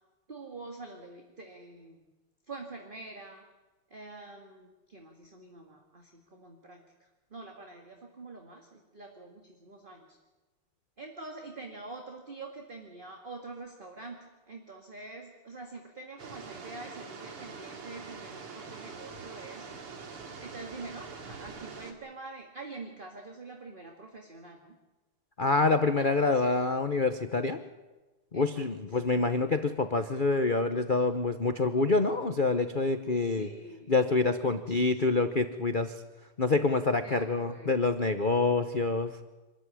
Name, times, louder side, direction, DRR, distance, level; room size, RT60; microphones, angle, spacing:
voice 1, 0.3-2.0 2.5-3.4 3.9-6.8 7.3-10.2 11.0-19.7 20.4-24.8 25.6-26.6 28.3-28.7 33.2-34.0 34.4-35.0 37.0-37.7, right 3 dB, 25° right, 3 dB, 1.9 m, -46 dB
sound 1, 16.2-21.9, right 5 dB, 85° right, 3.1 m, -44 dB
voice 2, 25.4-27.6 28.3-33.5 33.9-35.9 36.4-39.2, left 3 dB, 75° left, 9 dB, 0.4 m, -26 dB
25.5 x 14.0 x 9.9 m, 1.2 s
omnidirectional pair, 2.4 m